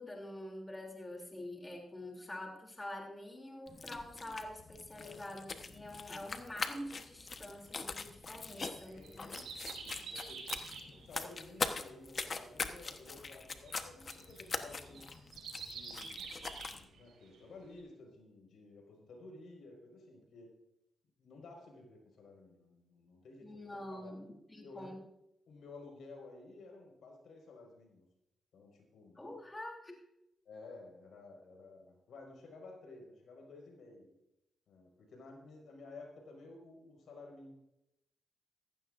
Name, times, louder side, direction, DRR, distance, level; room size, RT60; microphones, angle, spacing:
voice 1, 0.0-9.4 23.4-25.0 29.1-30.0, left 1 dB, 20° left, 1 dB, 3.1 m, -46 dB
sound 1, 3.7-16.8, left 4 dB, 45° left, 1.1 m, -43 dB
sound 2, 7.4-17.4 17.8-17.9, right 5 dB, 85° right, 5.5 m, -48 dB
voice 2, 8.6-15.0 15.6-20.5 21.2-24.1 24.6-25.0 25.5-28.1 28.5-29.2 30.4-34.1 34.7-37.5, left 3 dB, 80° left, 1 dB, 5.1 m, -54 dB
15.5 x 15.0 x 2.6 m, 0.84 s
cardioid pair, 70°, 0 cm